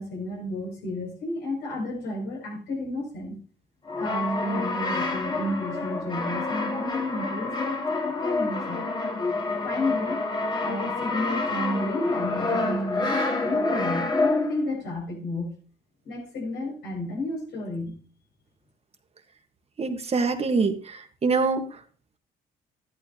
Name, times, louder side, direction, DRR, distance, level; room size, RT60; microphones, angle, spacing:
voice 1, 0.0-3.4 4.0-8.8 9.6-10.2 10.6-15.5 16.0-17.9, left 1 dB, 80° left, -2 dB, 6.5 m, -31 dB
Brass instrument, 3.9-14.7, left 3 dB, 25° left, 2.0 m, -28 dB
voice 2, 19.8-21.7, right 4 dB, 35° right, 6 dB, 1.5 m, -25 dB
14.0 x 11.5 x 2.9 m, 0.41 s
cardioid pair, 90°, 18 cm